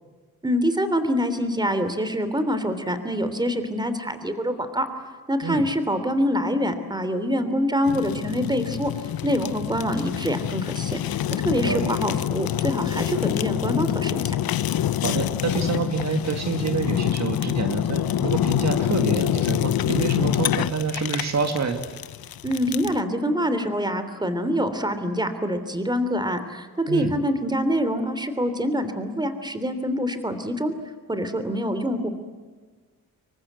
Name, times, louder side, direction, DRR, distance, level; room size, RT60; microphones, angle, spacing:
voice 1, 0.4-4.9 5.3-8.9 9.2-14.3 22.4-30.7 31.1-32.1, equal, 10° right, 10 dB, 3.1 m, -25 dB
Fire, 7.9-23.0, left 11 dB, 85° left, 0.9 m, -26 dB
voice 2, 11.5-11.9 15.0-21.8 26.9-27.1, right 5 dB, 50° right, 6 dB, 2.0 m, -27 dB
27.0 x 23.5 x 8.1 m, 1.4 s
wide cardioid pair, 120°, 35 cm